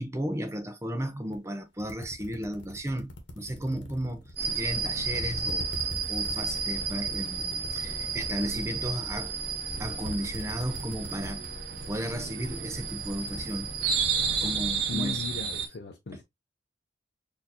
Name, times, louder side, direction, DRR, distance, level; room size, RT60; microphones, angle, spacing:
voice 1, 0.0-9.3 9.8-11.4 11.9-13.7 14.4-15.2, equal, 15° right, 0.5 m, -34 dB
sound 1, 1.3-1.4 1.8-4.7 5.0-11.5 11.7-12.0 12.3-14.4, left 1 dB, 90° left, 1.0 m, -43 dB
sound 2, 4.4-15.7, right 5 dB, 60° right, 0.7 m, -32 dB
voice 2, 14.9-16.2, left 4 dB, 60° left, 0.5 m, -37 dB
4.2 x 2.7 x 2.7 m
head